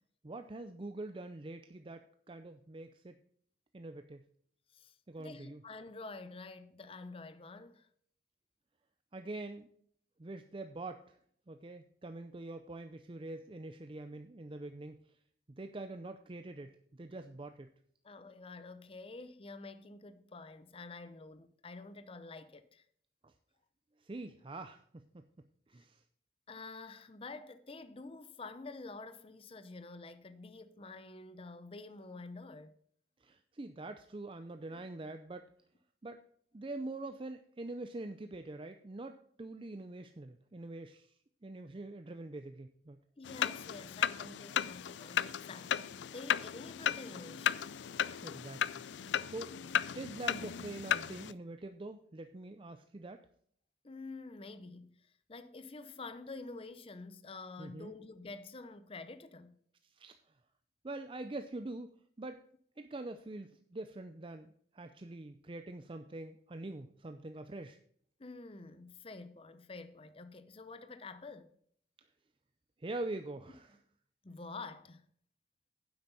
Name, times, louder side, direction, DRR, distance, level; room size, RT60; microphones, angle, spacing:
voice 1, 0.2-3.1 3.7-4.2 5.1-5.6 9.1-9.7 10.2-11.2 11.5-15.0 15.5-17.7 23.2-23.3 24.0-25.2 25.7-26.0 33.2-35.5 36.0-36.2 36.5-41.1 41.4-43.0 48.2-48.7 49.0-49.5 49.9-53.2 57.6-57.9 59.8-60.2 60.8-61.9 62.2-62.4 62.8-67.8 72.8-73.8, right 2 dB, 30° right, 0.5 m, -44 dB
voice 2, 4.7-7.9 18.0-22.8 26.5-32.7 43.2-47.7 53.8-59.6 68.2-71.5 74.2-75.1, left 3 dB, 30° left, 0.7 m, -48 dB
sound 1, 43.2-51.3, left 9 dB, 90° left, 0.4 m, -35 dB
10.0 x 8.0 x 4.1 m
head